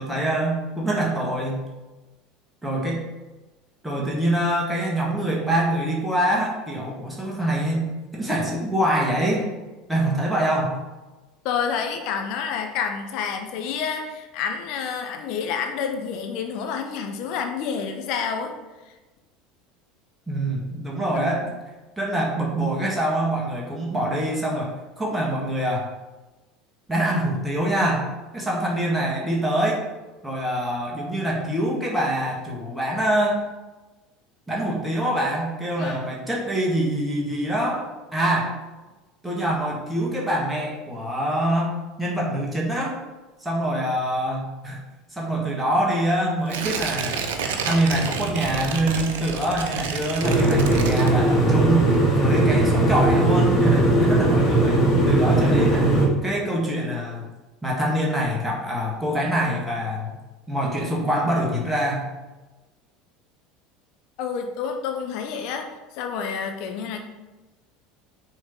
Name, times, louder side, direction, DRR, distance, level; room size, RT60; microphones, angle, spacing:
voice 1, 0.0-1.6 2.6-3.0 3.8-9.5 9.9-10.8 20.3-21.5 22.0-25.9 26.9-28.1 28.3-29.8 30.2-33.4 34.5-38.5 39.2-43.0 43.4-44.8 45.1-47.3 47.6-55.9 56.2-57.2 57.6-60.2 60.5-62.0, right 1 dB, 5° right, -3 dB, 1.7 m, -25 dB
voice 2, 11.4-18.5 35.8-36.0 64.2-65.7 65.9-67.0, left 6 dB, 60° left, 5 dB, 0.8 m, -28 dB
Tearing, 46.5-51.6 51.9-52.0, right 6 dB, 70° right, 0.6 m, -30 dB
sound 1, 50.2-56.1, right 1 dB, 40° left, 1.7 m, -19 dB
6.1 x 3.8 x 5.3 m, 1.1 s
hypercardioid pair, 75°, 0 cm